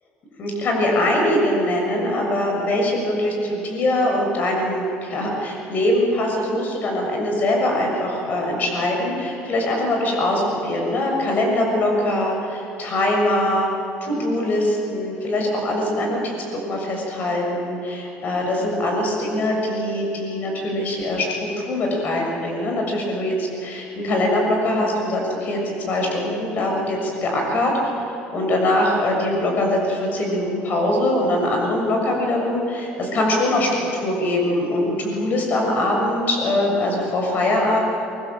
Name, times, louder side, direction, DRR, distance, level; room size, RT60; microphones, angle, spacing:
voice 1, 0.4-13.7 14.0-16.4 16.7-21.3 21.6-27.7 28.3-37.8, left 1 dB, 45° left, 0 dB, 7.0 m, -22 dB
24.5 x 23.5 x 7.6 m, 3.0 s
cardioid pair, 125°, 4 cm